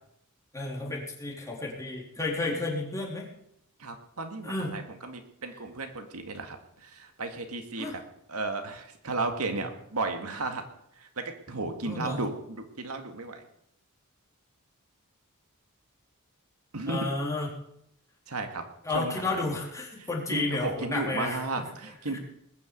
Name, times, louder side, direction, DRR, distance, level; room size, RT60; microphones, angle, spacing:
voice 1, 0.5-3.3 4.4-4.7 7.8-8.0 9.1-9.2 11.9-12.2 16.9-17.5 18.8-21.6 22.1-22.2, left 2 dB, 15° left, -2 dB, 3.7 m, -32 dB
voice 2, 3.8-8.0 8.3-10.6 11.0-13.5 16.7-17.1 18.3-18.6 18.9-19.5 20.0-22.2, right 3 dB, 80° right, 6 dB, 2.0 m, -34 dB
20.0 x 7.0 x 8.4 m, 0.74 s
head